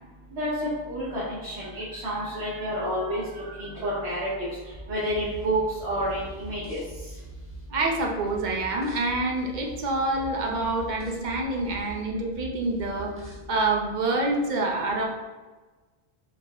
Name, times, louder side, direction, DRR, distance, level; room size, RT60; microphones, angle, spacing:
voice 1, 0.3-4.3 4.9-6.8, equal, 80° right, -8 dB, 1.3 m, -29 dB
voice 2, 3.3-3.7 7.7-15.0, right 2 dB, 50° right, 1 dB, 0.7 m, -27 dB
sound 1, 4.7-13.4, right 2 dB, 15° right, 0.9 m, -44 dB
4.3 x 2.1 x 4.2 m, 1.3 s
omnidirectional pair, 1.1 m